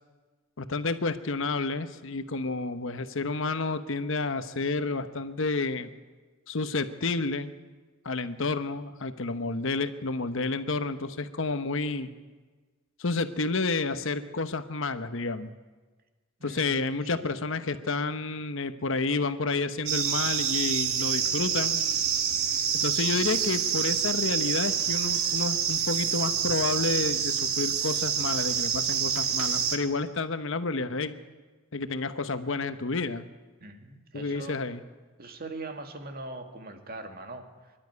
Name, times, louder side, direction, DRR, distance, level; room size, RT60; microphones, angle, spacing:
voice 1, 0.6-5.9 6.5-7.5 8.0-12.1 13.0-15.5 16.4-21.8 22.7-31.1 31.7-33.3 34.1-34.8, left 3 dB, 65° left, 10 dB, 1.0 m, -30 dB
voice 2, 16.4-16.8 17.1-17.3 33.6-34.6 35.2-37.7, right 2 dB, 45° right, 5 dB, 2.0 m, -41 dB
sound 1, 19.9-29.8, right 7 dB, 90° right, 1.8 m, -27 dB
23.5 x 12.0 x 9.5 m, 1.3 s
head